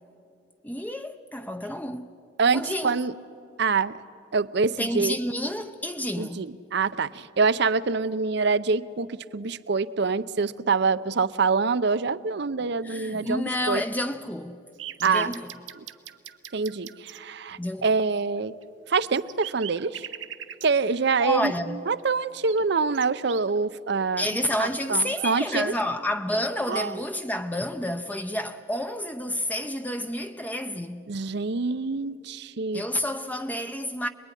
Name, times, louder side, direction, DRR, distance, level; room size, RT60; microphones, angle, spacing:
voice 1, 0.6-2.1 2.5-3.0 4.8-6.5 12.8-14.6 15.0-15.5 17.6-17.9 21.2-21.8 24.2-31.1 32.7-34.1, left 1 dB, 10° left, 0.6 m, -29 dB
voice 2, 2.4-3.1 3.6-4.0 4.3-5.2 6.2-13.8 15.0-15.3 15.8-15.9 16.5-18.5 18.9-20.1 20.6-21.5 21.9-24.3 24.6-25.7 26.7-26.9 31.1-32.8, right 4 dB, 60° right, 0.6 m, -25 dB
sound 1, 14.8-17.2 18.6-18.7 18.9-20.7 22.0-22.1 22.5-23.6, right 11 dB, 80° right, 1.0 m, -40 dB
26.5 x 21.0 x 10.0 m
head